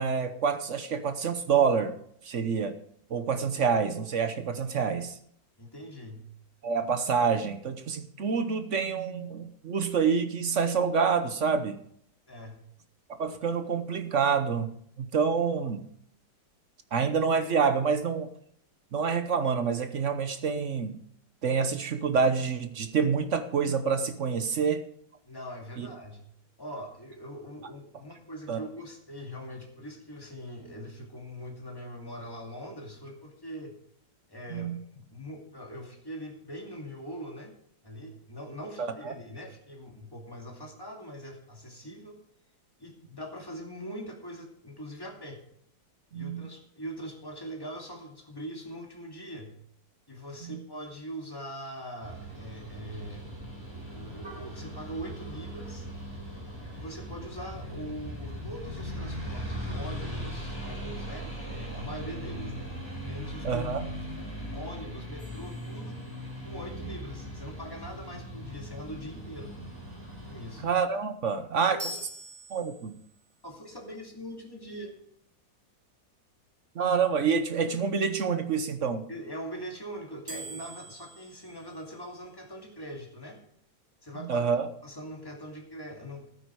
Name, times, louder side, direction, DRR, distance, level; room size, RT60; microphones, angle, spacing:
voice 1, 0.0-1.9 2.2-2.7 3.1-5.1 6.6-11.8 13.2-14.7 15.0-15.8 16.9-18.3 18.9-21.0 21.4-24.8 25.8-25.9 28.5-28.6 34.5-34.8 38.8-38.9 46.1-46.4 63.4-63.8 70.6-71.8 72.5-73.0 76.7-79.0 84.3-84.7, right 6 dB, 50° right, 9 dB, 1.0 m, -27 dB
voice 2, 5.6-6.3 12.3-12.6 25.3-26.2 26.6-33.7 34.3-37.5 37.8-42.2 42.8-45.4 46.1-49.5 50.1-53.3 53.9-55.9 56.7-62.7 63.0-63.6 64.5-66.0 66.4-69.5 70.3-70.6 71.6-72.0 73.4-75.0 79.1-83.4 84.0-84.5 84.8-86.3, equal, 10° left, 1 dB, 2.3 m, -42 dB
sound 1, 52.0-70.6, equal, 15° right, 3.9 m, -39 dB
sound 2, 65.2-66.5 71.8-73.3 80.3-82.4, right 1 dB, 30° right, 1.7 m, -45 dB
12.5 x 9.6 x 4.7 m, 0.67 s
omnidirectional pair, 2.0 m